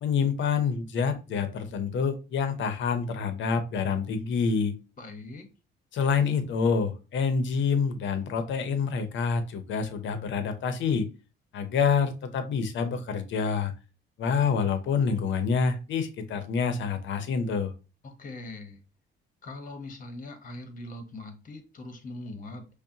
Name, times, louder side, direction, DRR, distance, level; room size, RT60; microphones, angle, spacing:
voice 1, 0.0-4.7 5.9-11.1 11.5-13.7 14.2-17.7, left 5 dB, 70° left, 0.7 m, -27 dB
voice 2, 5.0-5.5 18.0-18.8 19.4-22.7, left 2 dB, 45° left, 1.0 m, -41 dB
5.4 x 2.2 x 2.7 m
cardioid pair, 90°, 20 cm